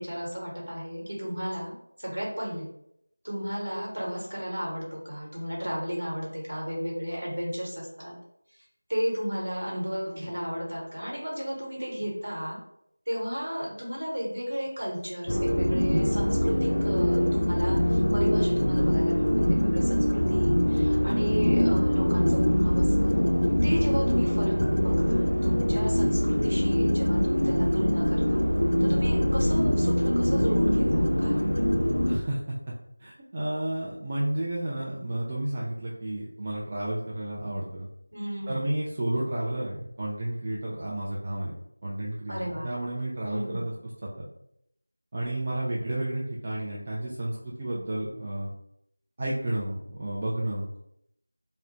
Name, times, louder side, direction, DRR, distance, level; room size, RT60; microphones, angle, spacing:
voice 1, 0.0-2.7 3.2-8.1 8.5-8.6 8.9-12.6 13.1-23.2 23.6-28.4 28.8-31.7 38.1-38.6 42.3-42.7 43.2-43.7, equal, 65° right, -3 dB, 1.1 m, -34 dB
sound 1, 15.3-32.2, equal, 80° left, 0.3 m, -23 dB
voice 2, 32.1-32.4 33.0-37.9 38.5-41.5 41.8-43.7 45.1-48.5 49.2-50.8, right 1 dB, 25° right, -5 dB, 0.3 m, -31 dB
2.3 x 2.1 x 2.9 m, 0.76 s
figure-of-eight pair, 170°, 0 cm